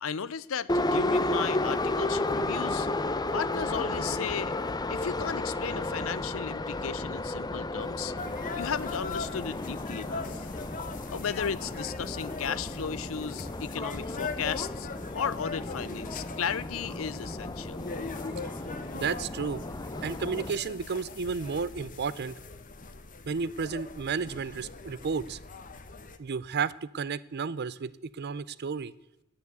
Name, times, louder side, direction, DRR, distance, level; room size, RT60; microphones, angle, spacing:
voice 1, 0.0-2.9 3.3-4.6 4.9-8.1 8.5-10.5 11.1-17.9, left 7 dB, 80° left, 18 dB, 0.6 m, -35 dB
Subway metro underground, 0.7-20.5, left 2 dB, 20° left, 0.6 m, -33 dB
sound 1, 8.2-26.2, left 4 dB, 40° left, 0.9 m, -41 dB
voice 2, 18.9-19.6 20.0-22.3 23.3-25.4 26.2-28.9, right 5 dB, 50° right, 18 dB, 0.5 m, -32 dB
10.5 x 9.6 x 8.1 m, 0.91 s
head